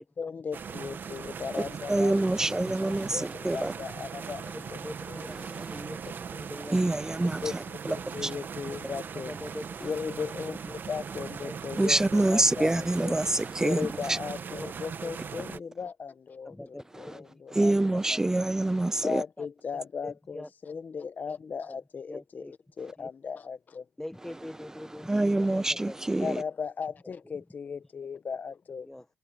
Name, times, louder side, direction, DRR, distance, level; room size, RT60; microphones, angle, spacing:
voice 1, 0.2-4.8 5.1-5.8 6.3-6.4 7.4-9.3 9.8-10.6 10.9-13.2 13.6-16.6 17.0-17.7 18.1-18.2 19.0-22.5 22.8-23.8 26.2-28.9, left 6 dB, 30° left, 1.3 m, -37 dB
sound 1, 0.5-15.6, right 6 dB, 35° right, 1.7 m, -39 dB
voice 2, 1.9-3.7 6.7-7.9 8.2-8.3 11.8-14.2 17.6-19.2 25.1-26.4, right 2 dB, 10° right, 0.5 m, -26 dB
voice 3, 4.5-5.4 5.7-6.8 7.5-7.6 9.1-9.7 10.5-10.8 11.4-11.6 13.4-13.5 14.6-14.7 15.0-15.1 16.4-17.4 19.4-19.5 20.0-20.5 21.3-21.4 21.7-21.8 22.1-22.5 23.0-23.1 24.0-25.1 25.3-26.0 27.2-27.4 27.7-27.8 28.8-29.0, left 1 dB, 5° left, 1.4 m, -43 dB
supercardioid pair, 85°, 5 cm